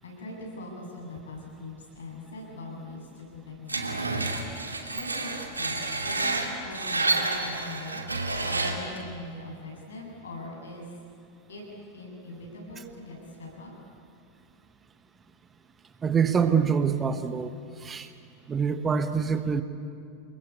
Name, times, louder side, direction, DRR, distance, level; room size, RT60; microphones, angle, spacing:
voice 1, 0.0-4.1 4.9-8.0 8.4-10.9 11.5-11.6 11.9-13.7, left 2 dB, 70° left, 0 dB, 8.0 m, -41 dB
Screech, 3.7-9.0, right 3 dB, 80° right, 2.6 m, -29 dB
voice 2, 16.0-17.5 17.8-18.1 18.5-19.6, right 6 dB, 20° right, 10 dB, 1.2 m, -25 dB
29.0 x 21.0 x 8.4 m, 2.5 s
figure-of-eight pair, 90°, 0 cm